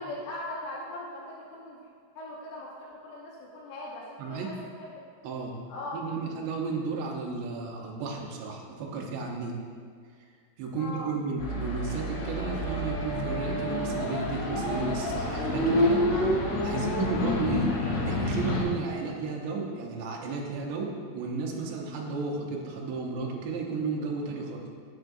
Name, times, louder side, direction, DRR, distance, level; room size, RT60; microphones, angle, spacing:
voice 1, 0.0-1.9 2.2-4.9 5.7-6.0 10.8-11.1 16.8-17.0, left 1 dB, 80° left, -6 dB, 3.4 m, -40 dB
voice 2, 4.2-4.5 5.2-5.6 5.9-9.6 10.6-16.1 16.6-17.7 18.0-24.7, right 4 dB, 75° right, -1 dB, 3.0 m, -33 dB
sound 1, 11.4-18.6, left 1 dB, 65° left, 3.8 m, -28 dB
11.0 x 7.9 x 2.7 m, 2.1 s
omnidirectional pair, 5.3 m